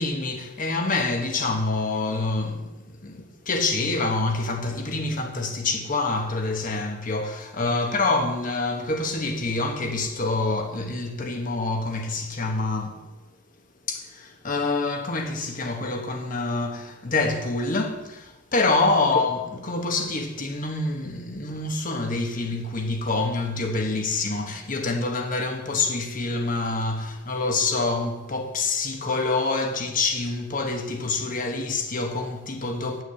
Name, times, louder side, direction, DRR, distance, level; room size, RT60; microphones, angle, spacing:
voice 1, 0.0-13.0 13.9-33.0, left 3 dB, 45° left, 1.2 m, -26 dB
8.6 x 6.2 x 8.1 m
head